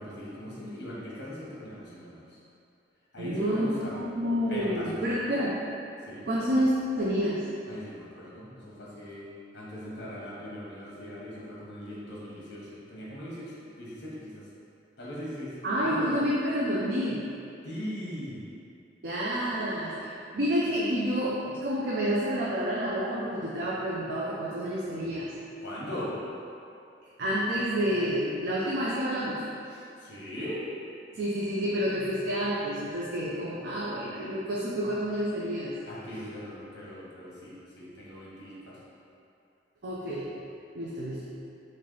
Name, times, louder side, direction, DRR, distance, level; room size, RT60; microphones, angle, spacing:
voice 1, 0.0-2.4 3.1-4.0 4.5-5.5 6.1-6.3 7.7-9.3 9.5-14.4 15.0-16.1 17.6-18.4 25.6-26.2 30.0-30.6 35.9-38.8, equal, 60° left, -7 dB, 1.1 m, -39 dB
voice 2, 3.2-5.6 6.2-7.4 15.6-17.3 19.0-25.3 27.2-29.4 29.7-29.8 31.1-35.8 39.8-40.3 40.7-41.2, equal, 60° right, -6 dB, 0.5 m, -29 dB
3.2 x 3.2 x 3.8 m, 2.6 s
head